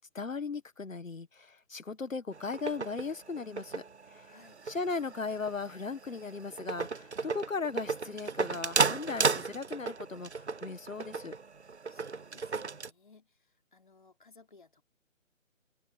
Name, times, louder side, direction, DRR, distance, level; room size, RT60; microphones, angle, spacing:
voice 1, 0.0-4.3 4.6-11.3, left 4 dB, 75° left, 1.6 m, -37 dB
sound 1, 2.3-12.9, right 4 dB, 55° right, 0.8 m, -34 dB
voice 2, 4.3-4.6 11.9-14.8, left 4 dB, 40° left, 3.6 m, -60 dB
open air
figure-of-eight pair, 180°, 40 cm